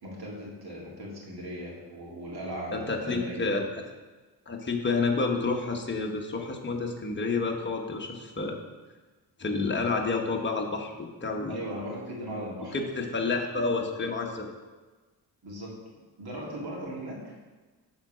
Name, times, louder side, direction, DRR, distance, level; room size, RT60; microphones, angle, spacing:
voice 1, 0.0-3.7 11.5-12.8 15.4-15.7 16.2-17.3, right 1 dB, 65° right, -3 dB, 2.2 m, -38 dB
voice 2, 2.7-3.6 4.5-8.6 9.4-11.6 12.7-14.5, left 3 dB, 25° left, 1 dB, 1.1 m, -29 dB
7.2 x 4.0 x 6.0 m, 1.3 s
cardioid pair, 95°, 40 cm